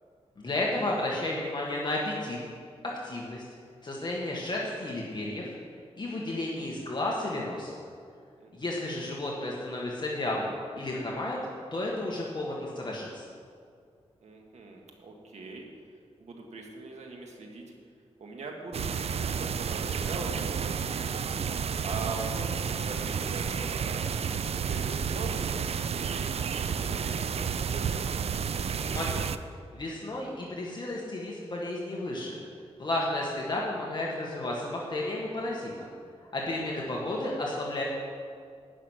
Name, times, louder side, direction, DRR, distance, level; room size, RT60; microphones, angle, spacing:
voice 1, 0.4-2.4 3.0-3.4 3.8-5.5 6.0-7.7 8.5-11.4 11.7-13.2 28.8-29.2 29.7-32.4 32.8-35.9 36.3-37.8, left 1 dB, 40° left, -3 dB, 1.6 m, -32 dB
voice 2, 8.4-9.0 14.2-15.6 16.2-17.7 18.2-21.2 21.8-24.0 24.7-25.5 26.0-28.0, right 3 dB, 85° right, 1 dB, 1.8 m, -41 dB
sound 1, 18.7-29.4, right 7 dB, 65° right, 0.5 m, -31 dB
12.0 x 6.1 x 9.1 m, 2.3 s
wide cardioid pair, 95°, 11 cm